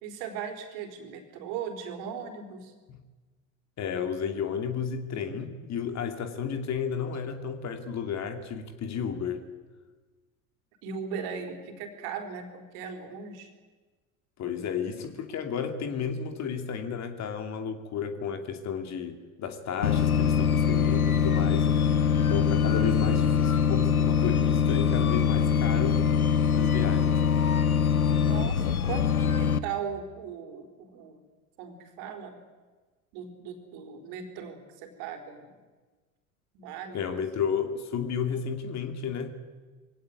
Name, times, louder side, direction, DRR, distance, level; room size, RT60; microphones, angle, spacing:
voice 1, 0.0-2.7 10.8-13.5 28.1-31.2 31.6-32.4 33.1-35.6 36.5-37.2 38.3-38.4, right 7 dB, 60° right, 5 dB, 4.2 m, -38 dB
voice 2, 3.8-9.4 14.4-21.7 22.1-26.0 26.6-27.2 36.9-39.3, left 7 dB, 40° left, 7 dB, 2.7 m, -32 dB
sound 1, 19.8-29.6, left 7 dB, 90° left, 1.0 m, -23 dB
22.5 x 17.5 x 9.5 m, 1.3 s
figure-of-eight pair, 75°, 42 cm